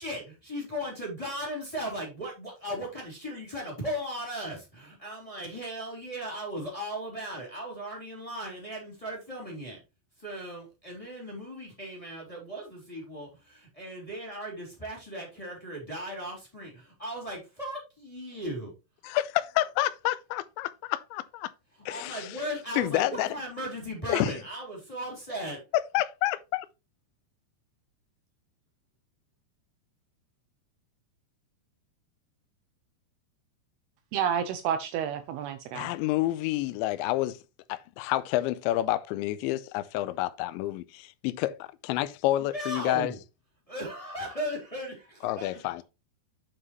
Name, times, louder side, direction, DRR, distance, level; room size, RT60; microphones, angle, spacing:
voice 1, 0.0-9.8 10.2-18.7 21.7-25.6 42.4-43.2 43.7-45.6, equal, 10° left, 3.1 m, -37 dB
voice 2, 19.0-21.5 21.9-22.3 22.8-23.3 24.1-24.4 25.9-26.7 35.7-37.4 37.7-43.1 45.2-45.8, left 16 dB, 85° left, 2.9 m, -29 dB
voice 3, 34.1-35.9, right 8 dB, 80° right, 2.4 m, -30 dB
9.5 x 5.7 x 3.2 m
omnidirectional pair, 5.2 m